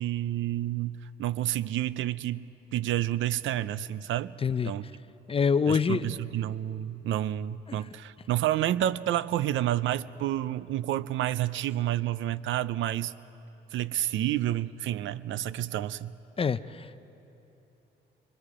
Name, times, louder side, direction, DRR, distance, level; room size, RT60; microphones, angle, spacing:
voice 1, 0.0-2.5 2.7-4.3 4.6-4.8 5.7-13.1 13.7-16.1, right 13 dB, 75° right, 17 dB, 0.5 m, -29 dB
voice 2, 4.4-4.7 5.3-6.1 7.7-7.8 16.4-17.0, left 6 dB, 30° left, 14 dB, 0.5 m, -26 dB
25.0 x 24.5 x 4.9 m, 3.0 s
cardioid pair, 90°, 20 cm